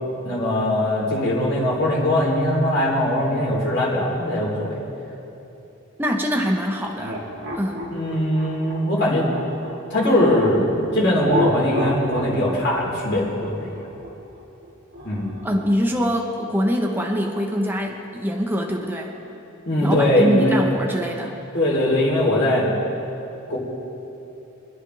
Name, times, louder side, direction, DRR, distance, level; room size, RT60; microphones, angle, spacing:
voice 1, 0.2-4.8 7.9-9.2 9.9-13.7 15.0-15.3 19.7-20.6 21.5-22.7 23.5-23.6, left 1 dB, 60° left, -4 dB, 3.7 m, -21 dB
voice 2, 6.0-7.2 7.5-7.9 15.4-19.2 19.8-21.4, equal, 10° right, 1 dB, 0.9 m, -24 dB
sound 1, 6.9-10.6 11.2-15.7, equal, 55° right, 1.9 m, -29 dB
25.5 x 9.9 x 3.4 m, 2.9 s
head